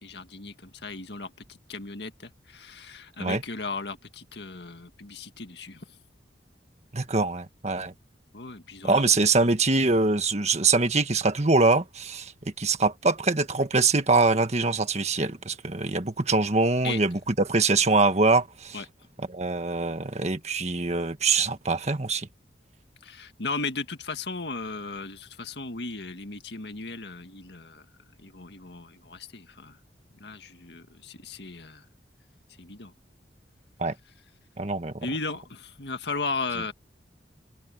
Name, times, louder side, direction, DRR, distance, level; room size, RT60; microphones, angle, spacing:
voice 1, 0.0-5.8 8.3-9.1 16.8-17.0 18.7-18.9 23.0-27.9 28.2-29.8 30.2-31.9 32.6-32.9 35.0-36.7, left 3 dB, 70° left, 1.9 m, -36 dB
voice 2, 6.9-7.9 8.8-12.3 12.6-18.8 19.3-22.3 33.8-33.9 34.6-35.1, right 3 dB, 40° right, 1.6 m, -24 dB
head